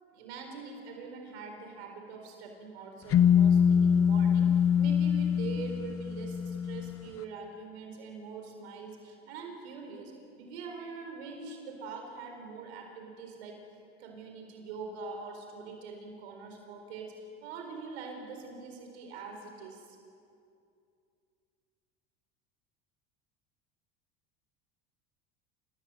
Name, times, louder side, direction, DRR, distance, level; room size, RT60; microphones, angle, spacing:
voice 1, 0.1-13.6 14.0-20.0, right 4 dB, 80° right, 3 dB, 4.5 m, -44 dB
sound 1, 3.1-7.0, left 8 dB, 45° left, 1.2 m, -24 dB
28.0 x 17.5 x 8.0 m, 2.5 s
hypercardioid pair, 85°, 32 cm